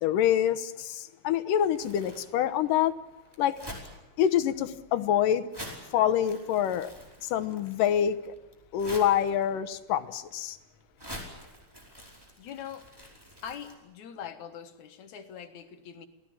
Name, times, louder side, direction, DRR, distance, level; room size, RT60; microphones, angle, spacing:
voice 1, 0.0-2.9 3.4-3.6 4.2-5.5 5.9-6.9 7.2-8.3 8.7-10.6, left 10 dB, 85° left, 2.6 m, -26 dB
Crumpling crinkling, 1.6-13.7, equal, 5° right, 4.7 m, -47 dB
voice 2, 12.4-12.9 13.4-16.1, left 8 dB, 65° left, 2.6 m, -42 dB
27.5 x 18.0 x 8.7 m
omnidirectional pair, 3.7 m